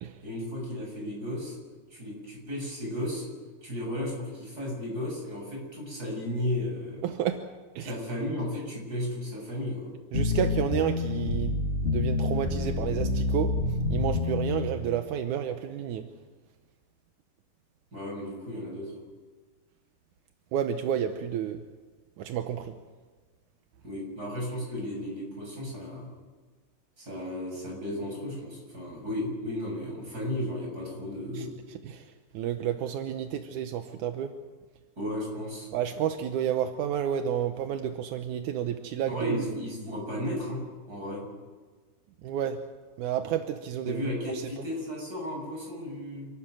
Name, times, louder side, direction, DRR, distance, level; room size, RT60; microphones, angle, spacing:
voice 1, 0.2-1.6 1.9-3.3 3.6-7.0 7.8-9.9 17.9-18.9 23.8-26.1 27.0-31.5 35.0-35.7 39.1-40.6 40.9-41.2 43.8-46.3, left 1 dB, 20° right, 0 dB, 7.6 m, -34 dB
voice 2, 7.0-7.9 10.1-13.6 13.9-16.1 20.5-21.6 22.2-22.7 31.3-31.5 31.8-34.4 35.7-39.5 42.2-42.7 43.0-44.6, right 9 dB, 70° right, 7 dB, 1.9 m, -31 dB
sound 1, 10.1-14.7, left 3 dB, 25° left, 1.6 m, -28 dB
28.0 x 13.5 x 9.2 m, 1.4 s
omnidirectional pair, 4.5 m